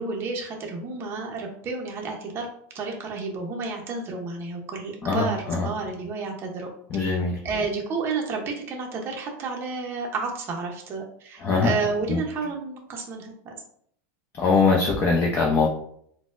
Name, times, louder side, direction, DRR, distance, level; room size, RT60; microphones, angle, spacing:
voice 1, 0.0-2.5 2.7-6.7 7.0-7.2 7.4-13.5, right 4 dB, 25° right, 0 dB, 0.5 m, -31 dB
voice 2, 5.0-5.7 6.9-7.4 11.4-11.7 12.1-12.2 14.4-15.7, left 4 dB, 25° left, -1 dB, 0.5 m, -22 dB
4.1 x 2.0 x 2.4 m, 0.66 s
supercardioid pair, 145°, 9 cm